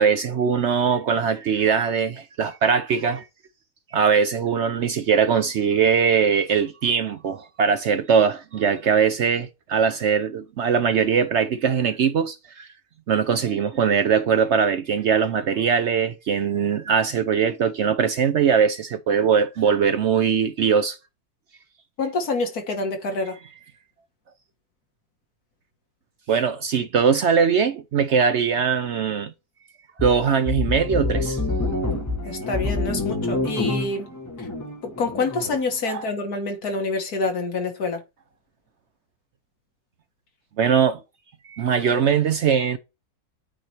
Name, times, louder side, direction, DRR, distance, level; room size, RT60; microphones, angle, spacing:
voice 1, 0.0-3.3 3.9-12.7 13.1-21.0 26.3-29.3 30.0-31.4 35.9-36.1 40.6-41.0 41.4-42.8, right 6 dB, 65° right, 0.8 m, -21 dB
voice 2, 22.0-23.4 32.2-34.1 34.4-34.5 34.8-38.0, left 3 dB, 75° left, 2.0 m, -27 dB
sound 1, 30.0-35.6, left 2 dB, 10° left, 1.3 m, -27 dB
8.7 x 3.2 x 4.3 m
omnidirectional pair, 1.6 m